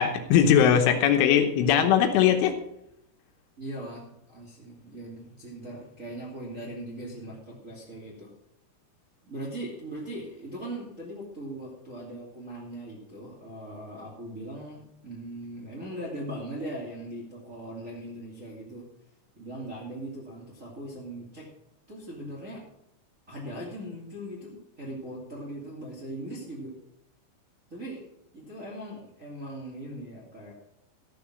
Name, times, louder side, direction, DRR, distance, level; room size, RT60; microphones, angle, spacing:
voice 1, 0.0-2.5, left 9 dB, 80° left, 6 dB, 3.5 m, -20 dB
voice 2, 3.6-8.3 9.2-18.8 19.4-21.5 21.9-22.6 23.3-26.7 27.7-28.0 28.3-30.5, right 1 dB, 25° right, -4 dB, 1.8 m, -39 dB
13.5 x 6.9 x 6.3 m, 0.80 s
omnidirectional pair, 5.6 m